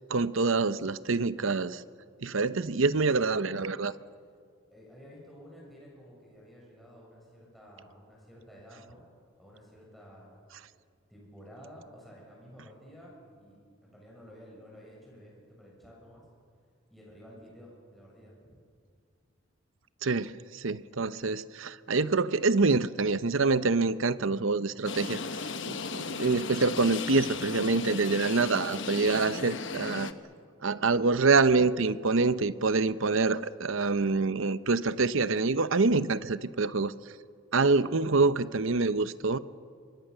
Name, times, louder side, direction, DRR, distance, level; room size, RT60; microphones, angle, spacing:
voice 1, 0.1-1.8 2.2-3.9 20.0-25.2 25.7-30.1 30.6-36.9 37.5-39.4, right 3 dB, 70° right, 14 dB, 0.8 m, -26 dB
voice 2, 4.7-9.0 9.4-10.4 11.1-16.2 16.9-18.6, equal, ahead, -4 dB, 7.0 m, -52 dB
sound 1, 24.9-30.1, left 4 dB, 60° left, 1.1 m, -36 dB
27.0 x 23.5 x 6.8 m, 2.1 s
head